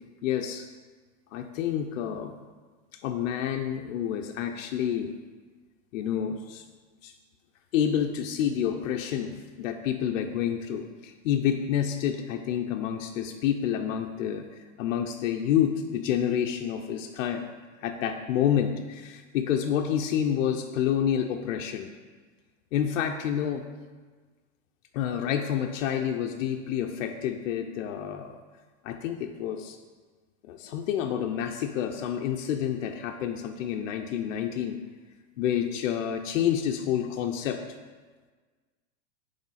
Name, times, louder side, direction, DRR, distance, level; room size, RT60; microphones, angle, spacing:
voice 1, 0.2-0.6 1.3-2.3 3.0-5.1 5.9-6.6 7.0-7.1 7.7-14.5 14.8-17.5 17.8-21.9 22.7-23.7 24.9-28.4 28.8-29.8 30.5-34.8 35.4-37.7, left 9 dB, 85° left, 4 dB, 0.6 m, -28 dB
8.5 x 3.3 x 4.1 m, 1.4 s
supercardioid pair, 170°, 39 cm